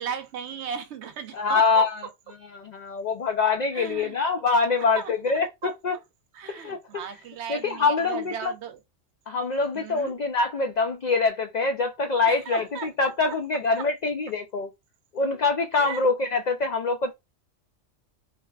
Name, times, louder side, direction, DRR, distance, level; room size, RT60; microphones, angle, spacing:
voice 1, 0.0-1.9 3.7-4.2 5.0-5.1 5.6-5.7 6.3-8.8 9.7-10.1 12.3-13.4 15.7-16.0, right 7 dB, 70° right, 0.8 m, -36 dB
voice 2, 1.3-2.0 2.5-6.0 6.5-7.0 7.5-8.5 9.3-14.7 15.1-17.1, left 4 dB, 75° left, 0.4 m, -25 dB
3.3 x 2.8 x 2.3 m
omnidirectional pair, 1.3 m